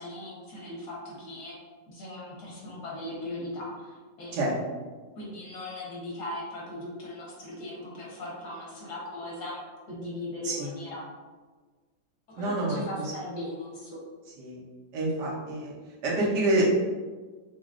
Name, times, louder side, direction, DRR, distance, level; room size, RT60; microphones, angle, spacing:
voice 1, 0.0-1.6 1.9-4.3 5.2-9.6 9.9-11.0 12.3-13.9, left 1 dB, 75° left, -4 dB, 1.7 m, -38 dB
voice 2, 12.4-13.1 14.4-14.6 14.9-15.7 16.0-16.8, right 1 dB, 85° right, -5 dB, 1.6 m, -27 dB
4.9 x 2.1 x 3.6 m, 1.4 s
omnidirectional pair, 1.8 m